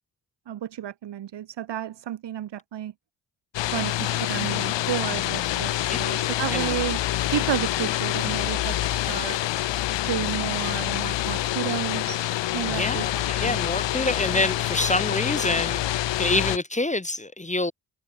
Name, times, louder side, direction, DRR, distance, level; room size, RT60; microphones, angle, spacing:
voice 1, 0.5-2.9 3.7-7.0 7.3-9.4 10.0-13.0 13.4-13.6, right 11 dB, 75° right, 5.2 m, -32 dB
sound 1, 3.5-16.6, left 14 dB, 85° left, 3.6 m, -26 dB
voice 2, 12.7-15.8 16.2-17.7, left 2 dB, 15° left, 2.8 m, -26 dB
supercardioid pair, 50°, 43 cm